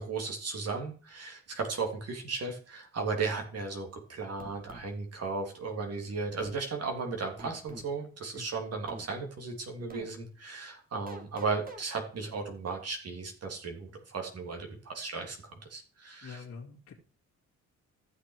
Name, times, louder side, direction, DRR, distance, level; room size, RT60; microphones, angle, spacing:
voice 1, 0.0-15.4 15.7-16.4, right 4 dB, 55° right, 2 dB, 3.2 m, -35 dB
sound 1, 4.4-4.9 6.4-6.6 7.4-7.9 8.9-9.1 9.9-10.1 11.1-11.8, right 1 dB, 30° right, 2.2 m, -45 dB
voice 2, 16.2-16.9, left 5 dB, 50° left, -4 dB, 2.3 m, -45 dB
14.5 x 6.5 x 4.8 m, 0.39 s
cardioid pair, 90°, 30 cm